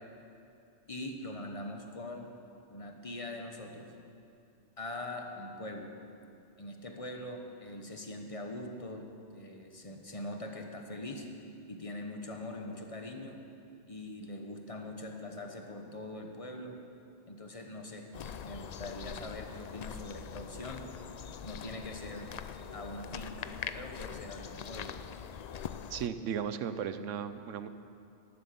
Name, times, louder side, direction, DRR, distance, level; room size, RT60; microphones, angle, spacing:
voice 1, 0.9-2.3 2.7-3.9 4.8-5.9 6.6-9.1 9.3-11.3 11.7-13.4 13.9-16.8 17.3-18.1 18.4-20.8 21.4-22.3 22.7-25.0, left 1 dB, 30° left, 3 dB, 1.2 m, -42 dB
sound 1, 18.1-26.1, left 7 dB, 65° left, 0.4 m, -43 dB
voice 2, 25.9-27.7, right 8 dB, 85° right, 11 dB, 1.0 m, -35 dB
14.5 x 11.0 x 6.9 m, 2.7 s
omnidirectional pair, 1.2 m